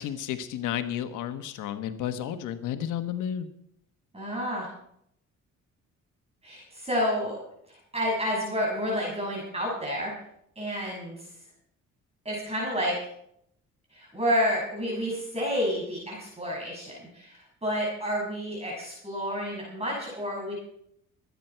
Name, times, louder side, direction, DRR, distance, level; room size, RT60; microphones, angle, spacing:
voice 1, 0.0-3.5, left 10 dB, 90° left, 9 dB, 1.2 m, -32 dB
voice 2, 4.1-4.7 6.4-7.4 7.7-10.1 10.6-11.3 12.2-13.0 13.9-20.5, equal, 20° right, -3 dB, 6.1 m, -30 dB
23.5 x 9.5 x 4.5 m, 0.73 s
cardioid pair, 90°, 30 cm